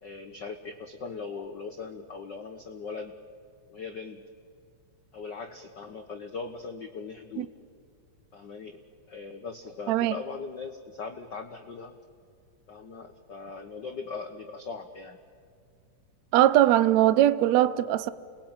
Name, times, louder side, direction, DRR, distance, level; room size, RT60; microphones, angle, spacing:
voice 1, 0.0-3.1 3.7-4.2 5.1-7.5 8.3-8.8 9.1-11.9 12.7-15.2, left 4 dB, 90° left, 0.9 m, -39 dB
voice 2, 16.3-18.1, right 13 dB, 70° right, 1.7 m, -21 dB
29.0 x 20.5 x 9.0 m
omnidirectional pair, 3.8 m